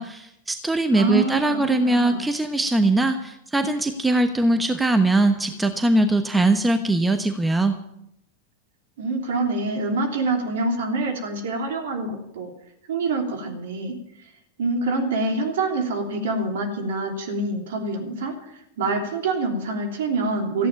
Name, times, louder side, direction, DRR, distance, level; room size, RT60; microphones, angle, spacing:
voice 1, 0.0-7.8, right 2 dB, 5° right, 7 dB, 1.1 m, -21 dB
voice 2, 0.9-1.6 1.8-2.3 9.0-12.5 12.9-13.9 14.6-18.5 18.8-20.7, right 3 dB, 60° right, 3 dB, 3.2 m, -26 dB
14.5 x 9.1 x 8.8 m, 0.80 s
figure-of-eight pair, 90°, 0 cm